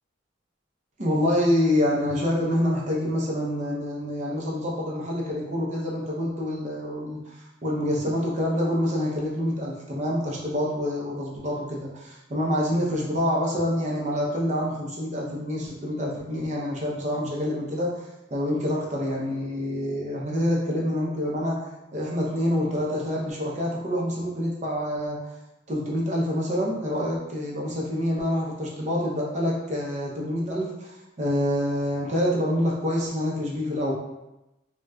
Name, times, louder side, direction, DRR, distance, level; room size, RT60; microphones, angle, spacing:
voice 1, 1.0-18.0 18.3-25.3 25.7-33.9, left 1 dB, 35° right, -4 dB, 0.6 m, -27 dB
3.9 x 2.2 x 2.3 m, 0.94 s
head